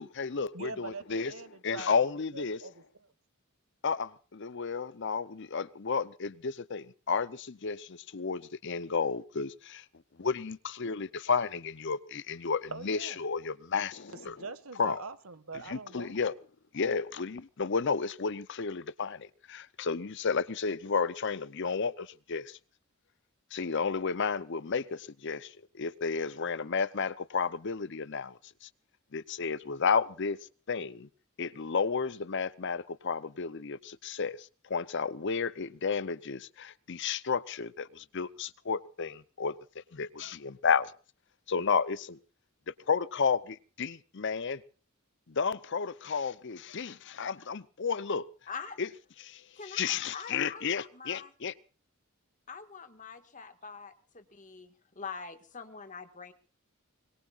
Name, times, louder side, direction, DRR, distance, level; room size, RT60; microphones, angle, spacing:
voice 1, 0.0-1.3 1.6-2.6 3.8-9.8 10.2-14.4 14.8-15.0 15.7-16.3 16.7-22.6 23.5-28.7 29.1-30.4 30.7-31.1 31.4-39.6 39.9-40.9 41.5-42.2 42.9-44.6 45.3-48.2 48.8-48.9 49.2-51.5, left 5 dB, 55° left, 0.7 m, -32 dB
voice 2, 0.5-1.9 2.3-3.1 12.7-13.2 14.2-16.2, right 3 dB, 85° right, 1.6 m, -43 dB
voice 3, 48.5-48.8 49.6-51.3 52.5-56.3, left 5 dB, 35° left, 1.8 m, -44 dB
24.0 x 22.0 x 2.5 m
head